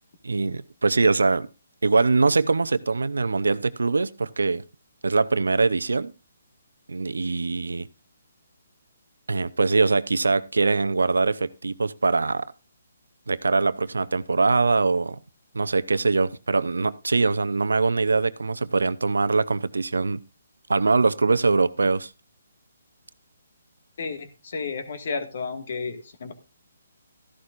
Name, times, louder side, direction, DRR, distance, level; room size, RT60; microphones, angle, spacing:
voice 1, 0.2-1.5 1.8-4.6 5.0-6.1 6.9-7.9 9.3-12.5 13.3-15.2 15.5-20.2 20.7-22.1, right 3 dB, 85° right, 0.6 m, -22 dB
voice 2, 24.0-26.3, left 4 dB, 55° left, 1.8 m, -32 dB
14.0 x 11.5 x 2.5 m
hypercardioid pair, 150°, 0 cm